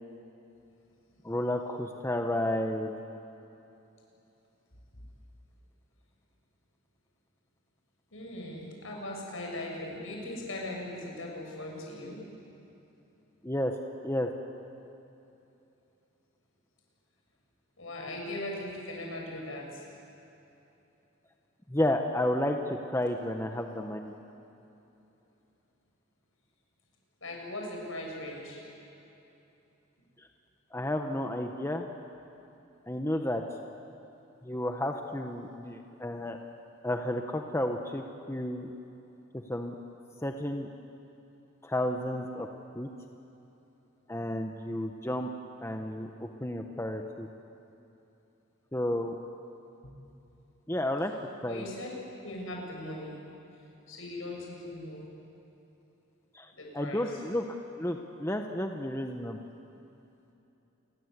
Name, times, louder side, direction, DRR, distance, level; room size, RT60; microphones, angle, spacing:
voice 1, 1.2-2.9 13.4-13.7 14.0-14.3 21.7-24.1 30.2-30.3 30.7-31.9 32.9-33.4 34.4-36.4 36.8-38.7 39.3-39.7 40.2-40.7 41.6-42.5 42.7-42.9 44.1-45.3 45.6-47.3 48.7-49.1 50.7-51.1 51.4-51.6 56.3-59.4, left 1 dB, 10° left, 4 dB, 1.0 m, -32 dB
voice 2, 8.1-12.2 17.8-19.9 27.2-28.6 49.8-49.9 51.5-51.9 52.2-53.2 53.9-55.0 56.5-57.2, left 1 dB, 70° left, -1 dB, 7.2 m, -39 dB
28.5 x 22.0 x 8.2 m, 2.9 s
head